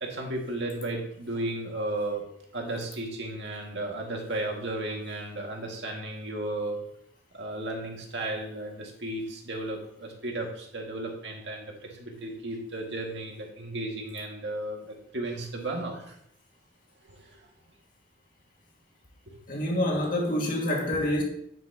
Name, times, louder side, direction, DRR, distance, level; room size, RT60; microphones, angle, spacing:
voice 1, 0.0-2.2 2.5-6.8 7.3-16.1 17.0-17.5 19.3-19.4, right 2 dB, 75° right, 2.1 m, -34 dB
voice 2, 19.5-21.2, left 1 dB, 50° left, 2.1 m, -27 dB
9.2 x 8.3 x 2.9 m
head